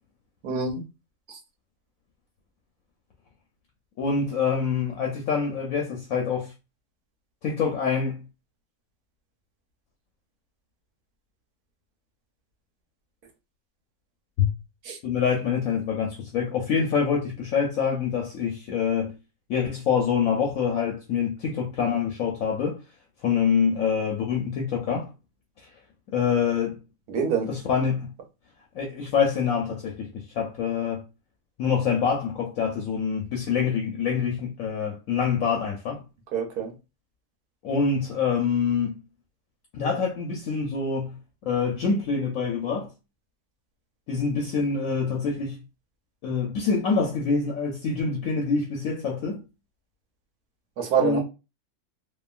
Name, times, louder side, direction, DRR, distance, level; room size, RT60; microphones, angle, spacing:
voice 1, 4.0-6.5 7.4-8.2 14.4-14.5 15.0-19.1 19.5-22.8 23.2-25.1 25.6-25.7 26.1-26.8 27.4-28.1 28.7-31.0 31.6-36.0 37.6-39.0 39.7-41.2 41.4-42.9 44.1-45.6 46.2-49.4 51.0-51.2, left 6 dB, 70° left, 0.9 m, -26 dB
voice 2, 27.1-27.5 36.3-36.7 50.8-51.2, right 7 dB, 75° right, 1.2 m, -25 dB
2.9 x 2.3 x 2.3 m
omnidirectional pair, 1.6 m